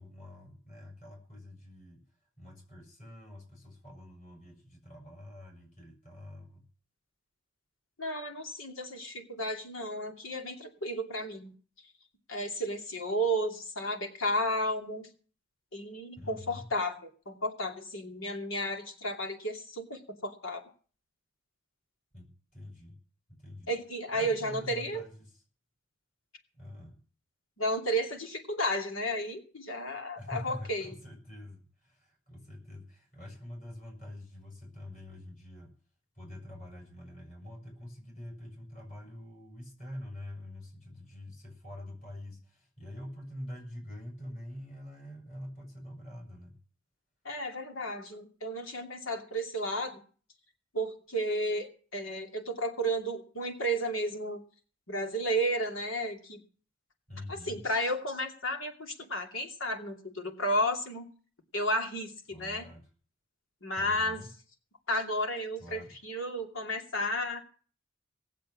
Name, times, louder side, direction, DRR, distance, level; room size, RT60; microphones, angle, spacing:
voice 1, 0.0-2.0 2.4-6.6 16.2-16.7 22.1-23.0 23.4-23.7 24.1-25.2 26.6-27.0 30.2-35.7 36.2-46.6 57.1-57.6 62.3-62.8 63.8-64.3 65.6-65.9, left 1 dB, 40° left, 2 dB, 6.9 m, -46 dB
voice 2, 8.0-11.5 12.3-15.1 15.7-20.6 23.7-25.0 27.6-30.9 47.2-49.9 50.7-54.4 54.9-56.4 57.3-61.1 61.5-62.7 63.6-64.2 64.9-67.4, equal, 85° left, 4 dB, 2.7 m, -33 dB
18.5 x 7.6 x 7.4 m, 0.41 s
head